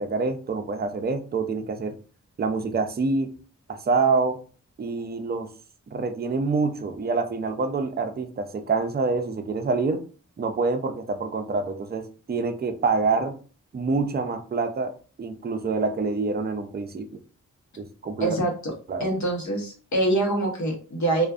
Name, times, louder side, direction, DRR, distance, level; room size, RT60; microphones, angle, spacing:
voice 1, 0.0-1.9 2.4-3.3 3.7-4.4 4.8-5.5 5.9-10.0 10.4-13.4 13.7-14.9 15.2-17.2 17.8-18.4 18.9-19.1, right 4 dB, 30° right, 7 dB, 0.4 m, -26 dB
voice 2, 18.2-18.7 19.0-21.3, right 2 dB, 65° left, 0 dB, 1.0 m, -25 dB
2.5 x 2.4 x 2.3 m, 0.38 s
cardioid pair, 55°, 31 cm